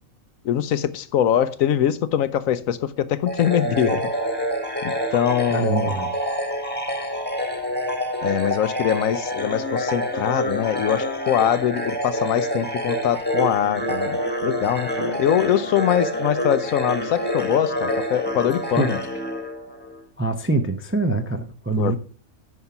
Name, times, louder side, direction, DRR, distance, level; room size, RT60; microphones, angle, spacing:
voice 1, 0.4-4.1 4.8-5.9 8.2-19.0 21.8-22.0, left 10 dB, 85° left, 1.1 m, -23 dB
sound 1, 3.3-20.0, equal, 10° left, 1.3 m, -27 dB
voice 2, 5.5-6.1 18.8-18.9 20.2-22.0, right 2 dB, 20° right, 0.3 m, -24 dB
9.5 x 5.5 x 5.8 m
omnidirectional pair, 1.4 m